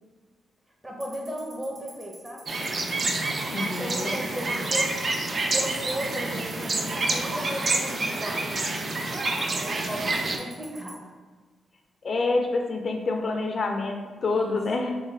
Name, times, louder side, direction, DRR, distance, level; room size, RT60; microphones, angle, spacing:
voice 1, 0.8-2.4 3.6-8.8 9.3-11.0 14.2-14.6, equal, 20° right, -1 dB, 0.7 m, -36 dB
Tick-tock, 1.0-10.9, right 4 dB, 65° right, 0.9 m, -46 dB
sound 1, 2.5-10.4, right 2 dB, 45° right, 0.3 m, -28 dB
voice 2, 3.5-4.2 12.0-14.9, left 3 dB, 50° left, 3 dB, 0.3 m, -27 dB
3.1 x 2.0 x 3.2 m, 1.4 s
cardioid pair, 70°, 0 cm